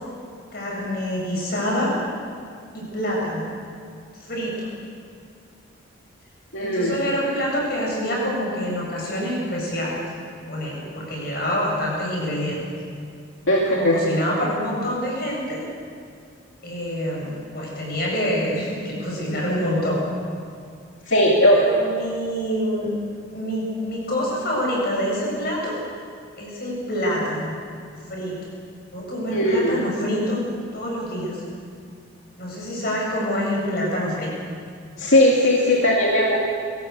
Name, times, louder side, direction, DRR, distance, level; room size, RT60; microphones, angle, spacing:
voice 1, 0.5-1.9 2.7-3.5 4.2-4.7 6.6-10.0 10.5-12.6 13.7-15.6 16.6-20.0 21.5-22.9 23.3-25.8 26.4-27.6 28.1-28.4 28.9-30.4 30.7-31.4 32.4-34.3, equal, 50° left, -3 dB, 7.8 m, -26 dB
voice 2, 6.5-6.9 13.5-14.0 21.1-21.6 29.3-29.8 35.0-36.4, left 1 dB, 75° left, -3 dB, 2.6 m, -18 dB
22.5 x 17.5 x 8.3 m, 2.3 s
head